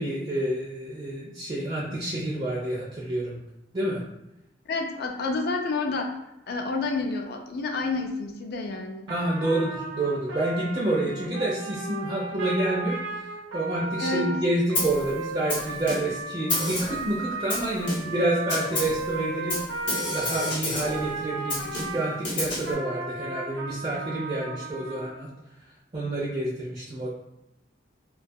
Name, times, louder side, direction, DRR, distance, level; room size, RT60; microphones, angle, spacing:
voice 1, 0.0-3.4 3.7-4.0 9.1-19.6 20.1-25.3 25.9-27.1, right 1 dB, 30° right, -5 dB, 0.4 m, -28 dB
voice 2, 4.7-6.1 6.5-9.1 14.0-14.3, left 3 dB, 55° left, 3 dB, 0.4 m, -29 dB
Trumpet, 9.1-22.2 22.6-25.2, right 3 dB, 90° right, 0.5 m, -35 dB
Snare drum, 14.7-15.1 15.5-16.2 16.5-17.1 17.5-18.2 18.5-19.0 19.5-21.0 21.5-22.7, left 1 dB, 75° left, 0.8 m, -30 dB
2.3 x 2.2 x 2.6 m, 0.90 s
head